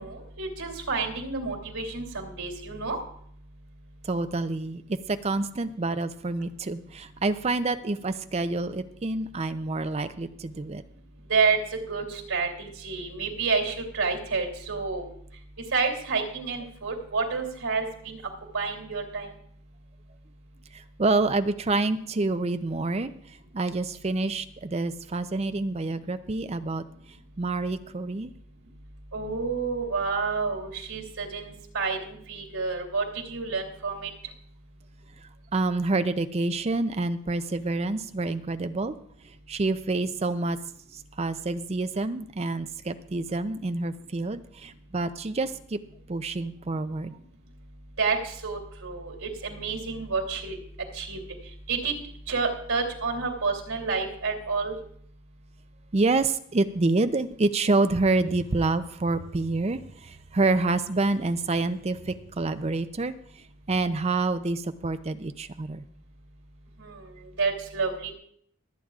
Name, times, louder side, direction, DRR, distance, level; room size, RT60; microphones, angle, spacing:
voice 1, 0.0-3.0 11.3-15.0 15.7-18.2 18.5-19.3 29.1-34.1 48.0-50.6 50.9-51.2 51.7-51.9 52.3-54.8 66.8-67.1 67.4-68.1, right 4 dB, 85° right, 1 dB, 3.0 m, -29 dB
voice 2, 4.0-10.8 20.7-23.1 23.5-26.8 27.4-28.3 35.5-38.9 39.5-40.6 40.9-45.8 46.1-47.2 55.9-63.1 63.7-65.8, right 3 dB, 30° right, 11 dB, 0.5 m, -27 dB
26.0 x 8.8 x 2.4 m, 0.65 s
head